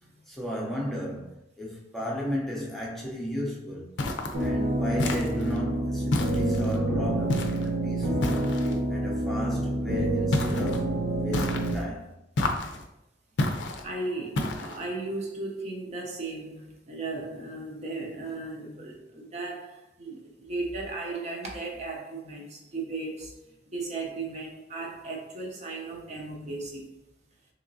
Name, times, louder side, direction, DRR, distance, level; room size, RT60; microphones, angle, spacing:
voice 1, 0.3-3.9 4.4-8.5 8.9-12.1, equal, ahead, 0.5 m, -35 dB
sound 1, 4.0-4.4 5.0-5.6 6.1-6.8 7.3-7.7 8.2-8.8 10.3-10.8 11.3-11.8 12.4-12.8 13.4-13.8 14.4-14.8, left 2 dB, 85° left, 0.4 m, -29 dB
sound 2, 4.3-11.7, right 1 dB, 60° right, 1.0 m, -27 dB
voice 2, 13.8-23.3 23.7-26.9, right 3 dB, 40° right, 0.6 m, -36 dB
3.6 x 3.0 x 2.6 m
head